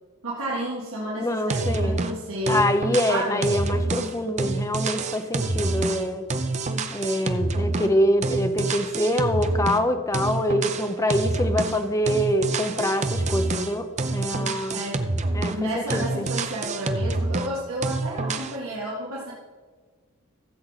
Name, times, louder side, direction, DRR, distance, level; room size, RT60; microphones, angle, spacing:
voice 1, 0.2-2.7 3.1-3.5 14.7-15.0 15.5-19.3, right 1 dB, 65° right, -6 dB, 1.8 m, -31 dB
voice 2, 1.2-2.0 2.5-6.3 6.9-14.8 15.3-16.3, equal, 15° left, 8 dB, 0.6 m, -25 dB
sound 1, 1.5-2.2 2.5-9.9 10.1-11.8 12.1-15.7 15.9-17.5 17.8-18.6, right 2 dB, 30° right, 0.6 m, -27 dB
14.5 x 7.5 x 4.0 m, 1.5 s
head